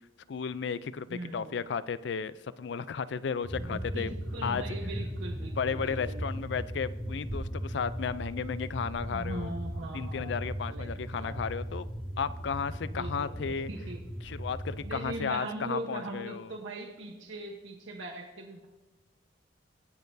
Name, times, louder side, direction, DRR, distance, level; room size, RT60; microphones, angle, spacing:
voice 1, 0.3-4.1 4.4-4.6 5.6-9.5 9.9-11.9 12.2-13.7 14.2-16.5, left 6 dB, 65° left, 16 dB, 0.4 m, -34 dB
voice 2, 1.1-1.6 3.5-6.2 9.0-10.9 11.2-11.4 12.8-14.0 14.8-18.7, right 2 dB, 90° right, 0 dB, 1.1 m, -40 dB
sound 1, 3.4-15.1, equal, 5° left, 1.7 m, -37 dB
18.5 x 6.6 x 2.7 m, 1.1 s
head